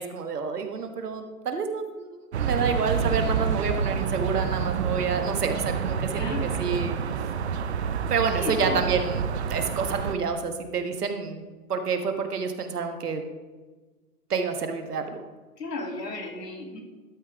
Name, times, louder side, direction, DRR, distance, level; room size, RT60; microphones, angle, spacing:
voice 1, 0.0-6.2 6.6-7.0 8.1-11.4 11.7-13.2 14.3-15.2, right 5 dB, 75° right, 6 dB, 1.4 m, -28 dB
sound 1, 2.3-10.2, right 6 dB, 45° right, 0.6 m, -28 dB
voice 2, 6.2-6.7 8.3-8.9 15.6-16.8, left 2 dB, 90° left, 2 dB, 2.4 m, -34 dB
12.0 x 5.2 x 4.8 m, 1.3 s
hypercardioid pair, 150°, 47 cm